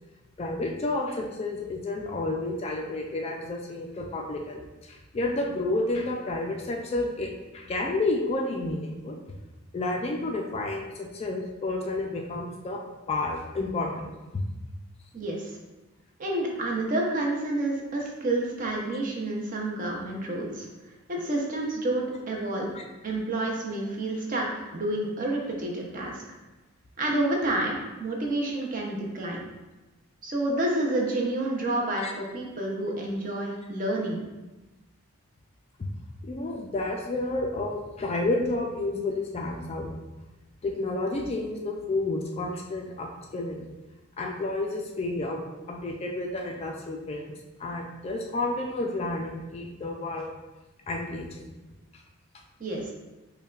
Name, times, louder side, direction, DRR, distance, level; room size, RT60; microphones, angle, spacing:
voice 1, 0.4-9.2 9.7-12.8 13.1-14.1 22.7-22.8 32.0-32.1 36.2-39.9 40.6-43.7 44.2-45.4 45.7-47.2 47.6-50.3 50.9-51.6, left 2 dB, 30° left, 1 dB, 0.3 m, -30 dB
voice 2, 15.1-15.5 16.2-20.7 21.1-22.7 23.0-26.2 27.0-29.4 30.2-34.2 52.6-52.9, right 1 dB, 40° right, -1 dB, 0.6 m, -29 dB
5.3 x 2.2 x 2.4 m, 1.1 s
head